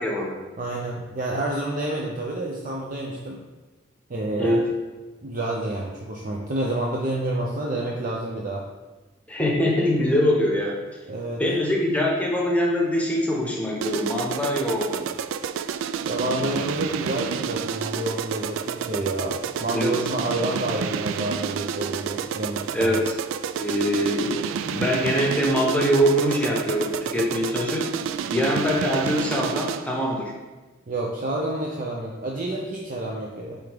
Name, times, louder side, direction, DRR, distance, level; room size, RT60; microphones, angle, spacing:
voice 1, 0.0-0.4 4.4-4.7 9.3-10.8 11.4-15.1 19.7-19.9 22.7-23.1 23.6-24.4 24.7-27.9 28.3-30.3, equal, 5° left, -2 dB, 1.0 m, -23 dB
voice 2, 0.6-3.4 4.1-4.6 5.2-8.6 11.1-11.4 16.0-22.9 30.9-33.6, right 1 dB, 45° right, -2 dB, 0.6 m, -29 dB
sound 1, 13.8-30.0, right 7 dB, 85° right, 0.3 m, -30 dB
8.4 x 3.4 x 3.6 m, 1.2 s
head